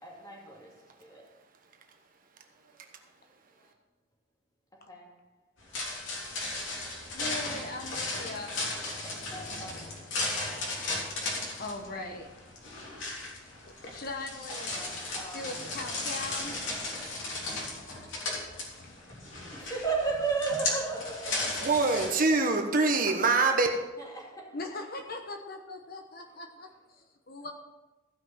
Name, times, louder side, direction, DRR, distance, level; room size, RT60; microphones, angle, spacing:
voice 1, 0.0-1.4 2.5-2.7 3.6-3.7 4.7-5.2 6.9-7.3 9.0-10.1 10.7-10.8 11.4-11.7 14.5-17.2 17.5-18.2 18.6-19.0 19.5-22.5 24.0-24.7 26.3-26.7, right 4 dB, 20° left, 2.6 m, -38 dB
sound 1, 5.6-22.1, left 2 dB, 70° left, 3.4 m, -36 dB
voice 2, 7.1-8.6 11.6-12.3 13.6-14.6 15.3-16.6 23.1-23.2 24.5-27.5, left 2 dB, 50° left, 1.1 m, -40 dB
voice 3, 21.6-23.7, right 3 dB, 45° right, 1.1 m, -24 dB
15.0 x 6.0 x 6.0 m
head